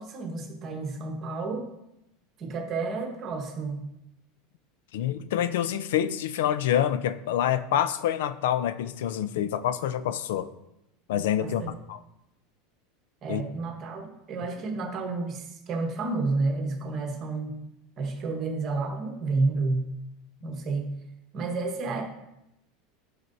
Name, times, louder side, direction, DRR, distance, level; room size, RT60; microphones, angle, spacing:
voice 1, 0.0-1.7 2.4-3.9 11.4-11.7 13.2-17.6 18.0-19.9 20.4-20.9 21.3-22.0, right 3 dB, 30° right, 2 dB, 1.2 m, -30 dB
voice 2, 4.9-10.5 11.1-12.0 13.3-13.4, left 10 dB, 80° left, 13 dB, 0.4 m, -27 dB
11.0 x 4.9 x 2.7 m, 0.86 s
supercardioid pair, 170°, 0 cm